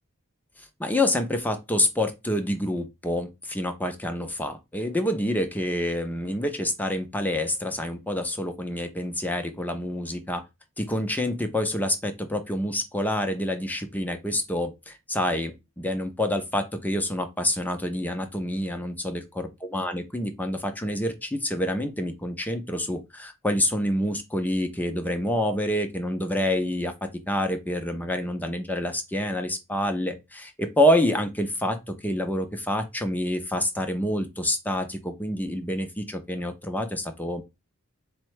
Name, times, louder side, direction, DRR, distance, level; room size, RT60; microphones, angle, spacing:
voice 1, 0.8-10.4 10.8-37.4, left 1 dB, 10° left, 0.5 m, -27 dB
4.3 x 2.1 x 4.6 m
head